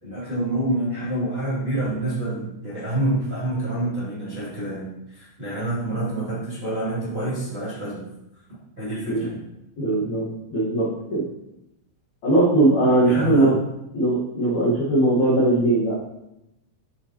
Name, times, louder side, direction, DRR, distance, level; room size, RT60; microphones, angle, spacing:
voice 1, 0.0-8.1 8.8-9.5 13.0-13.6, right 1 dB, 25° right, -10 dB, 1.3 m, -27 dB
voice 2, 9.8-11.3 12.2-13.6 13.9-16.0, right 2 dB, 70° left, -7 dB, 1.8 m, -20 dB
13.5 x 4.5 x 3.0 m, 0.87 s
omnidirectional pair, 5.9 m